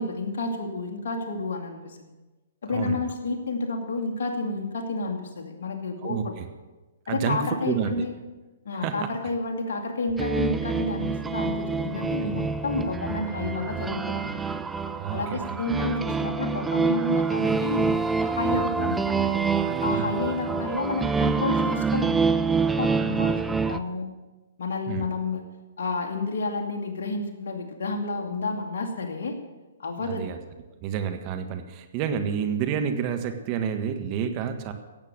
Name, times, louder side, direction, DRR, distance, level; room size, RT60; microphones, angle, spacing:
voice 1, 0.0-2.0 2.6-6.3 7.1-8.1 8.6-14.4 15.1-18.0 18.3-19.2 19.8-24.1 24.6-25.4 25.8-29.4 29.8-30.3, left 3 dB, 60° left, 1 dB, 2.4 m, -30 dB
voice 2, 2.7-3.0 6.0-6.5 7.1-8.1 8.7-9.1 12.2-12.3 15.0-15.6 19.7-20.2 24.9-25.1 30.0-30.4 30.8-34.7, right 7 dB, 35° right, 7 dB, 1.5 m, -29 dB
sound 1, 10.2-23.8, right 5 dB, 10° right, 0.6 m, -26 dB
16.5 x 8.2 x 6.6 m, 1.2 s
figure-of-eight pair, 120°, 0 cm